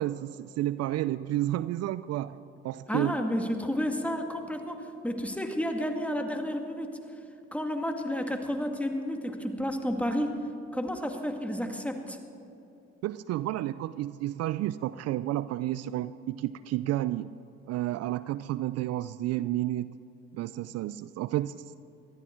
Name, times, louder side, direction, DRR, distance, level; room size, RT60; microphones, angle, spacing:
voice 1, 0.0-2.4 2.6-3.2 13.0-17.3 17.7-19.9 20.3-21.8, right 14 dB, 60° right, 16 dB, 0.4 m, -31 dB
voice 2, 2.9-7.0 7.5-10.4 10.7-12.2, equal, 5° left, 4 dB, 2.1 m, -31 dB
19.0 x 13.5 x 4.5 m, 2.9 s
hypercardioid pair, 60°, 29 cm